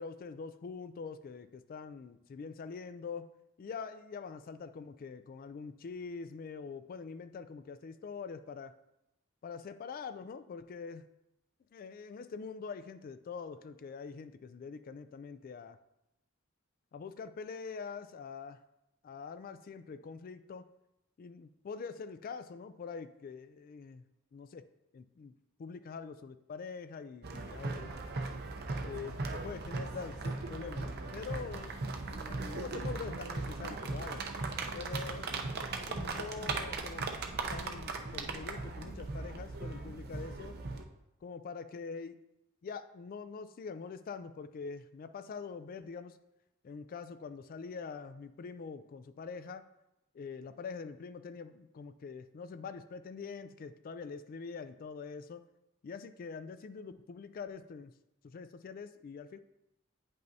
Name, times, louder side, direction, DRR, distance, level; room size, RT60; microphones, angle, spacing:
voice 1, 0.0-3.3 3.6-8.7 9.4-11.0 11.7-15.8 16.9-18.6 19.0-20.7 21.2-24.0 24.3-24.6 24.9-25.3 25.6-27.9 28.8-34.2 34.7-35.5 35.9-37.1 37.5-40.5 41.2-42.2 42.6-46.2 46.6-49.7 50.1-55.4 55.8-57.9 58.2-59.4, left 5 dB, 45° left, 12 dB, 0.3 m, -44 dB
sound 1, 27.2-40.8, right 3 dB, 50° right, 0.6 m, -38 dB
9.0 x 5.4 x 2.7 m, 0.88 s
head